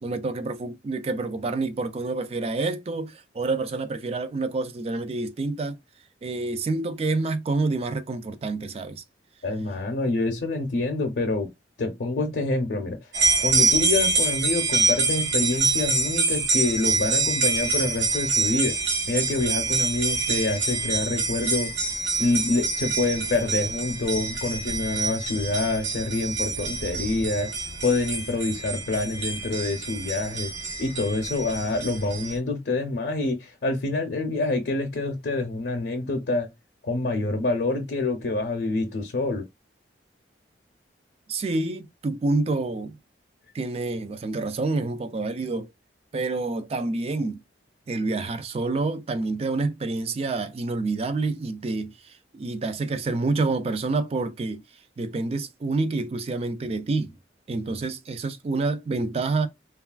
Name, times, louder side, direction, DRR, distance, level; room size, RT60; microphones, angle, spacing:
voice 1, 0.0-5.8 6.2-9.0 41.3-43.0 43.5-45.7 46.1-47.4 47.9-54.6 55.0-57.2 57.5-59.5, right 3 dB, 35° right, 0.3 m, -28 dB
voice 2, 9.4-11.5 11.8-13.1 13.4-18.8 19.1-21.7 22.2-27.5 27.8-30.5 30.8-36.5 36.8-39.4, left 2 dB, 65° left, 0.5 m, -26 dB
sound 1, 13.1-32.4, right 3 dB, 70° right, 0.9 m, -26 dB
3.1 x 2.3 x 2.3 m
head